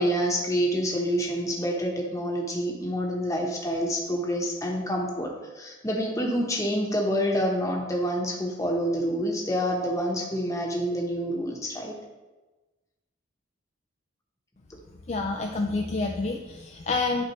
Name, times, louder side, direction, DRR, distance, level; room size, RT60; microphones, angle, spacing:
voice 1, 0.0-11.9, equal, 15° left, -1 dB, 1.1 m, -27 dB
voice 2, 15.1-17.2, left 3 dB, 35° left, 2 dB, 0.4 m, -28 dB
10.5 x 4.3 x 3.2 m, 1.2 s
head